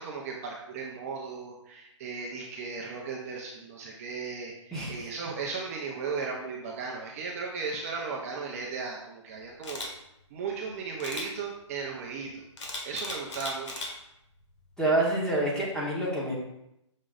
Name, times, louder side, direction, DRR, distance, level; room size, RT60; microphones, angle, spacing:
voice 1, 0.0-9.8 10.3-12.5 12.8-13.9, right 4 dB, 30° right, -1 dB, 0.7 m, -36 dB
Camera, 9.6-9.9 11.0-11.3 12.6-13.9 14.4-14.6, left 2 dB, 65° left, 1.6 m, -37 dB
voice 2, 14.8-16.4, right 1 dB, 5° left, -6 dB, 1.1 m, -27 dB
6.2 x 6.0 x 2.5 m, 0.83 s
hypercardioid pair, 155°, 16 cm